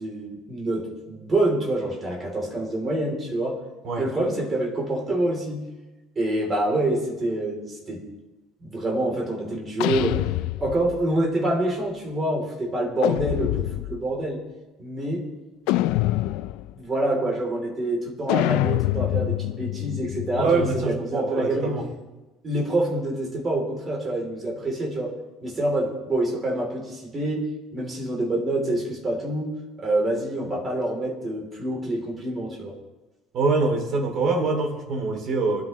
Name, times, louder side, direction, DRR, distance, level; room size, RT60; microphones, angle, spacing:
voice 1, 0.0-3.6 4.0-5.7 6.1-8.0 8.6-10.2 10.6-14.4 14.8-15.3 16.7-21.8 22.4-25.1 25.4-27.5 27.7-32.8, right 1 dB, 20° right, 0 dB, 3.2 m, -26 dB
sound 1, 9.8-11.1 13.0-14.1 15.7-16.7 18.3-21.0, left 16 dB, 75° left, 0.4 m, -26 dB
voice 2, 20.3-21.8 33.3-35.6, right 3 dB, 40° right, 2 dB, 2.7 m, -24 dB
23.5 x 13.0 x 3.1 m, 1.1 s
cardioid pair, 165°, 0 cm